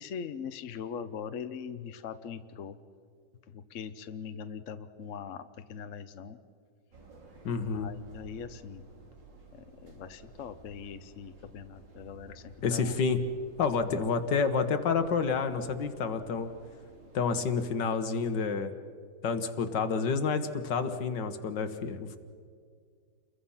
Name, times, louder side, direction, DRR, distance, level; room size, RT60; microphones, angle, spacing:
voice 1, 0.0-2.8 3.5-6.4 7.6-8.8 9.5-12.9 13.8-14.0, left 7 dB, 55° left, 10 dB, 1.0 m, -41 dB
sound 1, 6.9-17.4, right 3 dB, 85° right, 3.2 m, -54 dB
voice 2, 7.5-7.9 12.6-13.2 13.6-16.5 17.1-18.7 19.2-22.2, left 5 dB, 75° left, 9 dB, 1.9 m, -29 dB
29.5 x 22.0 x 5.7 m, 2.1 s
omnidirectional pair, 1.9 m